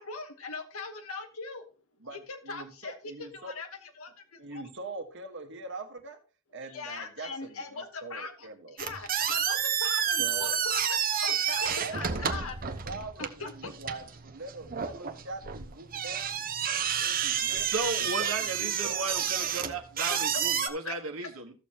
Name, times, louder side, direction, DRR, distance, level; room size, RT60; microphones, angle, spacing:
voice 1, 0.0-1.7 2.1-4.6 6.7-12.6 13.2-13.7 20.3-21.0, left 4 dB, 85° left, 5 dB, 1.2 m, -40 dB
voice 2, 2.0-3.5 4.4-6.2 6.5-8.8 10.2-10.5 11.8-17.7 18.0-19.8, right 3 dB, 60° right, 6 dB, 1.5 m, -43 dB
sound 1, 8.8-20.7, right 8 dB, 45° right, 0.9 m, -30 dB
voice 3, 17.6-21.5, right 3 dB, 80° right, 3 dB, 1.5 m, -35 dB
14.5 x 6.7 x 2.9 m, 0.35 s
head